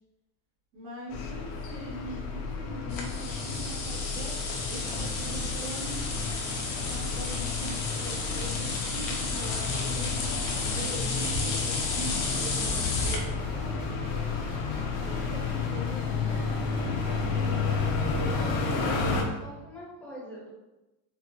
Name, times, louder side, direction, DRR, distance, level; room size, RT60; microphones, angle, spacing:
voice 1, 0.7-4.4 4.7-6.0 6.9-14.1 15.0-17.8, equal, 90° right, -11 dB, 1.4 m, -42 dB
sound 1, 1.1-19.2, left 4 dB, 45° left, 0.5 m, -31 dB
sound 2, 2.9-13.2, left 3 dB, 80° left, 1.0 m, -33 dB
sound 3, 4.7-19.0, right 4 dB, 60° right, 0.7 m, -46 dB
voice 2, 15.8-16.6 19.2-20.5, equal, 5° left, -6 dB, 0.7 m, -45 dB
4.4 x 2.0 x 2.7 m, 1.0 s
supercardioid pair, 155°, 49 cm